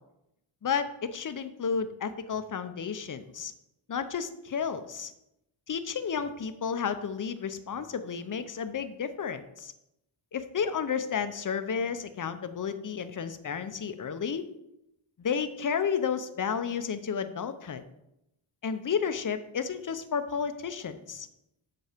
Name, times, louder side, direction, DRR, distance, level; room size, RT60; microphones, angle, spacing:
voice 1, 0.6-3.5 3.9-5.1 5.7-9.7 10.3-14.5 15.2-17.8 18.6-21.3, left 6 dB, 40° left, 10 dB, 0.7 m, -32 dB
8.1 x 6.2 x 5.1 m, 0.85 s
wide cardioid pair, 145°, 49 cm